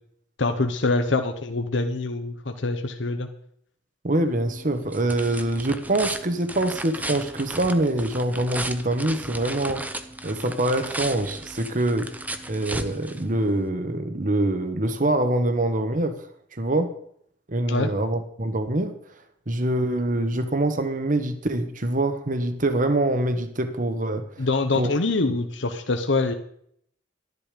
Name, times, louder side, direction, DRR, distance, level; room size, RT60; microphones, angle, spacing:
voice 1, 0.4-3.3 17.7-17.9 24.4-26.3, left 3 dB, 70° left, 6 dB, 0.9 m, -24 dB
voice 2, 4.0-9.8 10.2-12.1 12.5-16.1 16.5-16.9 17.5-18.9 19.5-24.5 24.8-24.9 25.2-25.4, right 1 dB, 45° right, 9 dB, 1.1 m, -24 dB
sound 1, 4.2-13.7, right 2 dB, 10° right, 0.7 m, -35 dB
12.0 x 10.5 x 5.1 m, 0.67 s
head